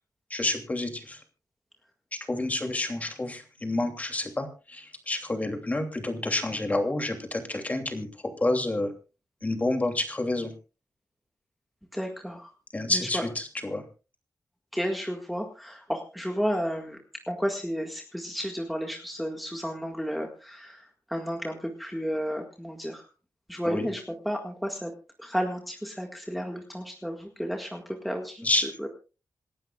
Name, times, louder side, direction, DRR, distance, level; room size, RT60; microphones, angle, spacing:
voice 1, 0.3-1.2 2.3-8.1 8.4-8.9 9.4-10.5 12.7-13.8 23.7-23.9 28.4-28.7, left 2 dB, 20° left, 4 dB, 2.9 m, -29 dB
voice 2, 11.9-12.5 12.9-13.2 14.7-17.0 17.3-23.1 23.5-24.9 25.2-28.9, equal, ahead, 1 dB, 1.8 m, -32 dB
27.5 x 12.0 x 2.4 m, 0.34 s
wide cardioid pair, 130°, 7 cm